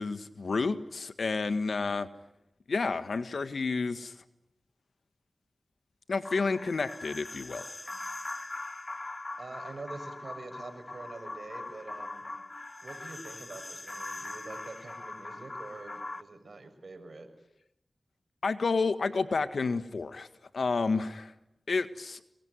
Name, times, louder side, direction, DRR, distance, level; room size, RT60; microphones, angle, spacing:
voice 1, 0.0-2.1 2.7-4.1 6.1-7.6 18.4-20.3 20.5-21.3 21.7-22.2, left 4 dB, 80° left, 12 dB, 1.7 m, -30 dB
sound 1, 6.2-16.2, left 2 dB, 45° left, 1.4 m, -41 dB
voice 2, 9.4-12.2 12.8-17.3, right 3 dB, 70° right, 7 dB, 6.2 m, -45 dB
24.5 x 23.0 x 9.7 m, 0.85 s
cardioid pair, 45°, 0 cm